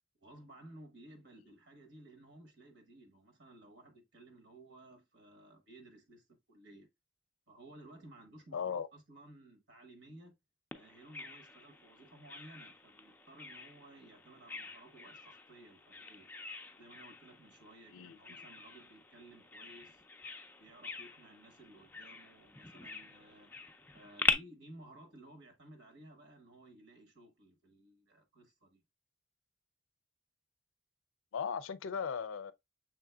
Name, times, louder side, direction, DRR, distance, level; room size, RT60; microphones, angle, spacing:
voice 1, 0.2-6.9 7.5-10.3 10.7-16.3 16.8-20.0 20.6-23.5 23.9-28.8, right 1 dB, 60° right, 1.2 m, -56 dB
voice 2, 8.5-8.9 17.9-18.4 31.3-32.5, left 6 dB, 80° left, 0.4 m, -37 dB
Bird vocalization bird call bird song, 10.7-24.3, left 3 dB, 10° left, 0.4 m, -42 dB
6.3 x 3.7 x 2.2 m
head